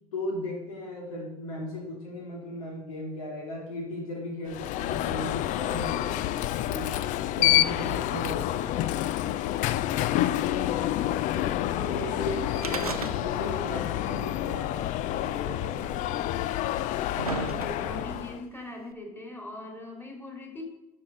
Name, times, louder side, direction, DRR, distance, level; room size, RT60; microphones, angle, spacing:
voice 1, 0.1-6.9 7.4-8.9 11.9-14.9 15.2-16.3, left 1 dB, 70° left, -1 dB, 2.2 m, -37 dB
Alarm, 4.5-18.4, left 13 dB, 45° left, 0.4 m, -28 dB
voice 2, 10.9-13.7 17.3-20.6, left 1 dB, 10° left, 1 dB, 2.7 m, -42 dB
sound 1, 12.6-13.6 13.9-14.0 14.9-15.0 15.9-16.0 16.7-18.1 18.9-19.0, right 5 dB, 90° right, 0.5 m, -34 dB
12.0 x 4.3 x 5.2 m, 0.99 s
figure-of-eight pair, 65°, 18 cm